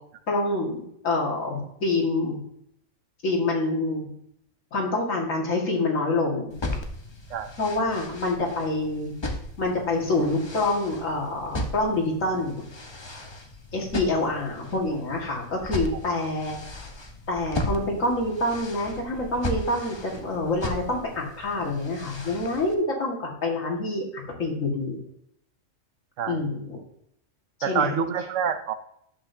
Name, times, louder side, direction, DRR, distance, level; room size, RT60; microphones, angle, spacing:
voice 1, 0.3-2.4 3.2-4.1 4.7-6.6 7.6-9.1 9.6-12.7 13.7-16.6 17.3-25.0 26.3-26.8 27.6-28.0, left 2 dB, 75° left, -1 dB, 2.3 m, -26 dB
sound 1, 6.5-22.7, left 1 dB, 25° left, 0.7 m, -36 dB
voice 2, 27.6-28.7, right 7 dB, 70° right, 10 dB, 1.0 m, -27 dB
11.0 x 7.9 x 2.7 m, 0.72 s
omnidirectional pair, 1.4 m